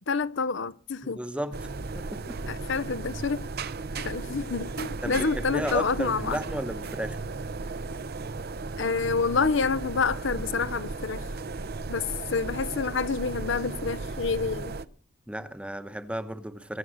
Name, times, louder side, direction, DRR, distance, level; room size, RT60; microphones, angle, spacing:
voice 1, 0.1-1.2 2.5-3.4 4.0-6.4 8.8-11.2 11.9-14.7, left 4 dB, 70° left, 0.7 m, -28 dB
voice 2, 1.0-2.4 5.0-7.2 15.3-16.8, right 1 dB, 5° right, 1.0 m, -34 dB
sound 1, 1.5-14.8, right 3 dB, 55° right, 0.7 m, -35 dB
22.0 x 7.6 x 6.3 m
head